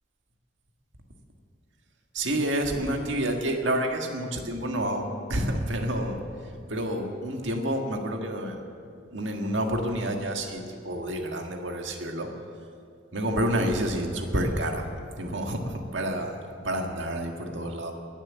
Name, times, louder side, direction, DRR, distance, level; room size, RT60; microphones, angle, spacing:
voice 1, 2.1-8.6 9.1-12.3 13.1-14.9 15.2-16.4 16.6-17.9, right 1 dB, 70° right, 3 dB, 1.7 m, -29 dB
20.5 x 7.5 x 7.6 m, 2.4 s
head